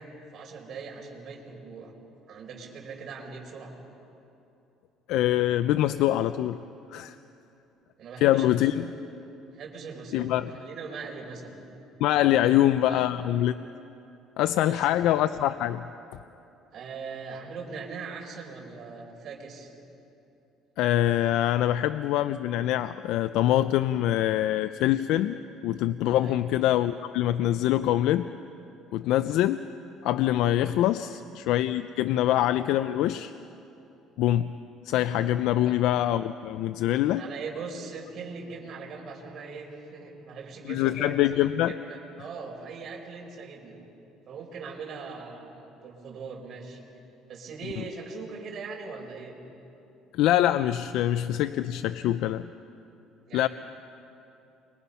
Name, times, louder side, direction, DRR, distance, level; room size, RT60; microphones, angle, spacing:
voice 1, 0.0-1.9 2.3-3.8 8.0-8.9 9.5-11.6 12.4-13.1 14.6-15.1 16.7-19.7 26.2-26.5 31.0-31.2 32.0-32.3 35.5-35.7 37.2-43.8 44.3-46.8 47.3-49.4 53.3-53.5, right 4 dB, 50° right, -1 dB, 5.2 m, -41 dB
voice 2, 5.1-6.6 6.9-7.2 8.2-8.9 10.1-10.5 12.0-13.7 14.4-15.9 20.8-25.4 25.6-28.3 28.9-29.7 30.0-33.3 34.2-34.5 34.8-37.2 40.7-41.7 50.1-52.5 53.3-53.5, left 13 dB, 75° left, 11 dB, 0.5 m, -24 dB
29.5 x 23.5 x 5.7 m, 2.8 s
cardioid pair, 115°, 0 cm